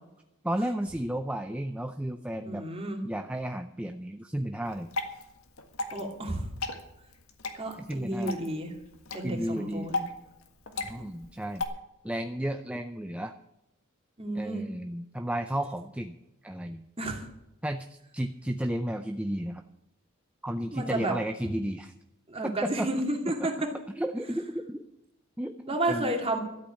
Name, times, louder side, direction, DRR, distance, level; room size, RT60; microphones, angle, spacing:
voice 1, 0.4-2.7 3.0-4.9 7.8-8.4 9.2-9.9 10.9-11.6 12.0-13.3 14.3-16.1 16.4-16.9 17.6-19.6 20.4-21.9 22.4-22.9 23.9-24.9 25.4-26.1, right 1 dB, 5° right, 6 dB, 0.5 m, -33 dB
voice 2, 2.4-3.0 5.9-6.5 7.6-8.7 9.1-10.0 10.8-10.9 14.2-14.6 17.0-17.2 20.7-21.1 22.3-23.5 25.7-26.4, right 1 dB, 25° right, 2 dB, 2.5 m, -31 dB
Water / Drip, 4.6-11.6, left 3 dB, 75° left, 1.7 m, -37 dB
13.0 x 8.4 x 8.6 m, 0.87 s
head